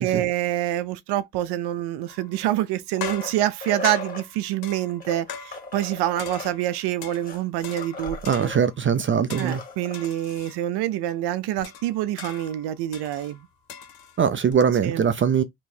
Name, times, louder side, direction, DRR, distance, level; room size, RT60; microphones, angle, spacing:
voice 1, 0.0-8.5 9.4-13.5 14.8-15.0, right 13 dB, 75° right, 0.7 m, -26 dB
sound 1, 2.1-2.5 3.0-5.9 6.2-7.3 7.6-8.8 9.3-10.6 11.1-11.2 11.6-14.5, left 8 dB, 65° left, 1.7 m, -40 dB
sound 2, 2.3-4.3 4.9-8.6 8.9-9.0 9.3-10.1 11.6-11.7, left 2 dB, 20° left, 2.0 m, -38 dB
voice 2, 8.3-9.6 14.2-15.4, right 7 dB, 30° right, 0.5 m, -21 dB
4.5 x 3.1 x 2.7 m
cardioid pair, 105°, 40 cm